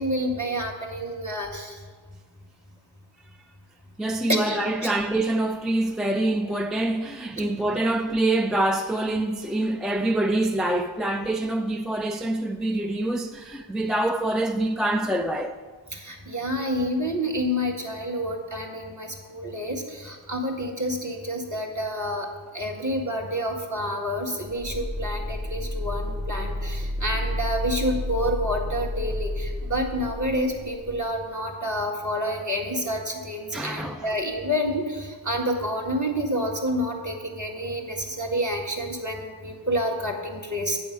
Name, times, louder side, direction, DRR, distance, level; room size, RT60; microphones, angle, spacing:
voice 1, 0.0-1.8 4.3-4.9 7.4-7.5 15.9-22.3 22.5-40.8, equal, 35° right, 1.8 m, -28 dB
voice 2, 4.0-15.6 33.5-34.1, right 1 dB, ahead, 0.4 m, -25 dB
sound 1, 24.5-31.1, left 1 dB, 15° right, 0.9 m, -31 dB
9.3 x 7.0 x 5.2 m
wide cardioid pair, 40°, 49 cm